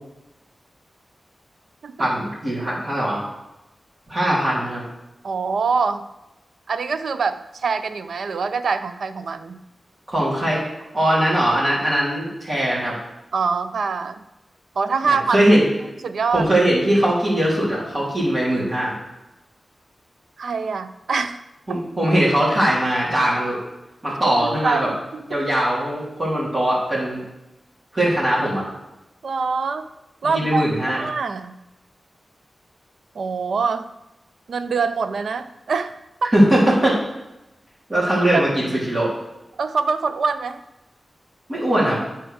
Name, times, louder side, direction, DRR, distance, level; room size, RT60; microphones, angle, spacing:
voice 1, 2.0-3.2 4.1-4.8 10.1-10.6 10.9-12.9 15.0-15.6 16.3-18.9 21.7-23.6 24.0-24.9 25.3-27.2 27.9-28.6 30.3-31.0 36.3-36.9 37.9-39.1 41.5-42.0, right 1 dB, 35° right, -7 dB, 3.3 m, -20 dB
voice 2, 5.2-6.0 6.7-9.6 13.3-14.2 14.8-15.4 16.0-16.5 20.4-21.4 21.7-21.8 24.2-25.4 29.2-29.9 30.2-31.6 33.1-33.9 34.5-36.3 38.3-38.4 39.6-40.6, right 5 dB, 80° right, 11 dB, 0.5 m, -24 dB
8.0 x 4.5 x 6.4 m, 0.95 s
wide cardioid pair, 80°, 0 cm